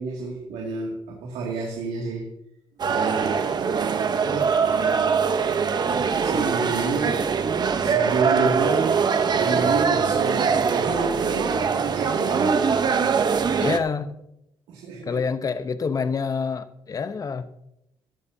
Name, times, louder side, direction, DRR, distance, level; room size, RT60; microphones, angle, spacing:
voice 1, 0.0-2.3 2.8-5.2 5.8-7.2 7.8-9.1 9.4-12.7 14.7-15.2, right 4 dB, 85° right, -1 dB, 2.4 m, -29 dB
sound 1, 2.8-13.8, right 6 dB, 45° right, 0.9 m, -22 dB
voice 2, 13.6-14.2 15.1-17.5, left 5 dB, 35° left, 11 dB, 0.9 m, -27 dB
15.5 x 12.0 x 2.8 m, 0.81 s
cardioid pair, 80°, 10 cm